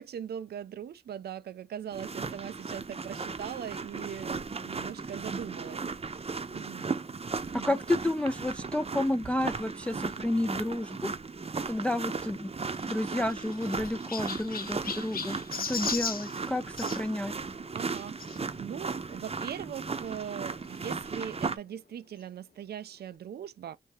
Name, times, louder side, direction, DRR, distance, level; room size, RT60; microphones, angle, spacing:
voice 1, 0.0-6.9 7.4-7.8 17.7-23.8, right 9 dB, 70° right, 0.4 m, -41 dB
sound 1, 1.9-21.6, right 4 dB, 35° right, 0.7 m, -36 dB
voice 2, 7.5-11.1 11.7-12.5 12.9-15.4 15.7-17.3, left 1 dB, 5° left, 0.3 m, -30 dB
Chirp tweet, 12.7-17.0 18.2-18.4 19.1-19.2 19.4-19.5 20.8-20.9, left 6 dB, 60° left, 0.7 m, -37 dB
3.5 x 2.7 x 4.6 m
cardioid pair, 60°, 17 cm